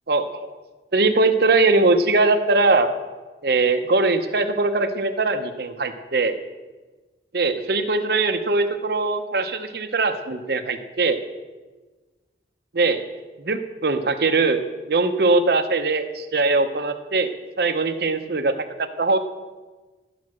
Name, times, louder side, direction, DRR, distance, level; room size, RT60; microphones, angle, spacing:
voice 1, 0.9-2.9 3.4-6.3 7.3-11.2 12.7-13.0 13.4-14.6 14.9-17.3 17.6-19.2, right 3 dB, 60° right, 7 dB, 0.8 m, -21 dB
12.5 x 9.6 x 6.3 m, 1.3 s
head